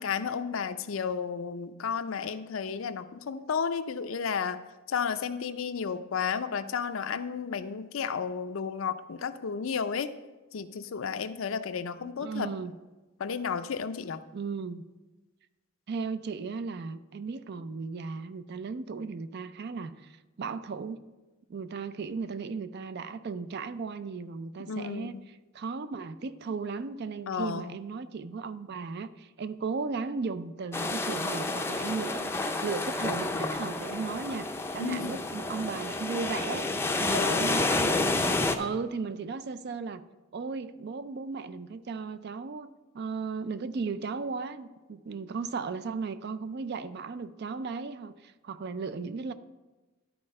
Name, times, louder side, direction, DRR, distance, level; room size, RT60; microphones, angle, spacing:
voice 1, 0.0-4.6 4.9-10.1 10.5-12.5 13.2-14.2 24.7-25.2 27.3-27.8 34.8-35.2 37.1-37.6, left 6 dB, 75° left, 11 dB, 0.5 m, -32 dB
voice 2, 12.2-12.7 14.3-14.8 15.9-21.1 21.5-25.1 25.5-36.7 37.0-38.0 38.5-40.0 40.3-42.7 42.9-49.3, right 4 dB, 55° right, 13 dB, 0.4 m, -36 dB
sound 1, 30.7-38.6, left 2 dB, 10° left, 0.5 m, -30 dB
12.0 x 4.3 x 5.3 m, 1.2 s
head